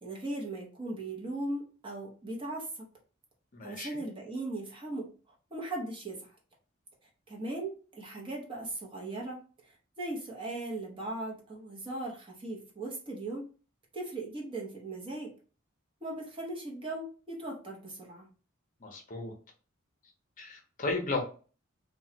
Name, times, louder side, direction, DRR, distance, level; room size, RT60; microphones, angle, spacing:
voice 1, 0.0-2.7 3.6-5.1 5.5-6.3 7.3-13.4 13.9-15.3 16.0-18.3, right 2 dB, 25° right, -1 dB, 0.8 m, -38 dB
voice 2, 3.5-4.0 18.8-19.3 20.4-21.2, left 3 dB, 40° left, 2 dB, 0.7 m, -34 dB
3.0 x 2.2 x 2.8 m, 0.37 s
head